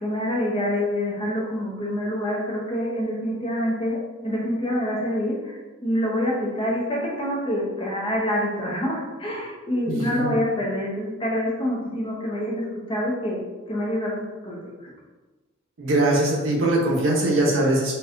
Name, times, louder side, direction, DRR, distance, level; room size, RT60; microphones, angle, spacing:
voice 1, 0.0-13.4 13.7-14.9, equal, 25° left, -3 dB, 0.7 m, -26 dB
voice 2, 9.9-10.3 15.8-17.9, right 1 dB, 75° right, -2 dB, 0.8 m, -21 dB
4.1 x 2.3 x 2.5 m, 1.2 s
head